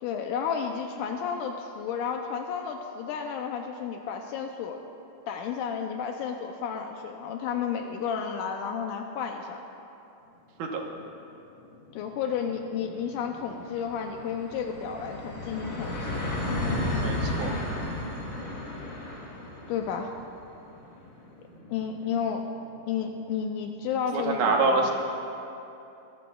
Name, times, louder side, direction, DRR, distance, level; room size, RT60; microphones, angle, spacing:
voice 1, 0.0-4.8 5.3-9.6 11.9-16.2 19.7-20.1 21.7-22.5 22.9-24.9, left 7 dB, 80° left, 3 dB, 2.1 m, -32 dB
sound 1, 11.2-11.3 11.6-23.0, left 1 dB, 40° left, 2.9 m, -34 dB
voice 2, 17.0-17.5 24.1-24.9, right 3 dB, 75° right, 1 dB, 2.6 m, -25 dB
23.0 x 14.0 x 2.3 m, 2.9 s
omnidirectional pair, 3.7 m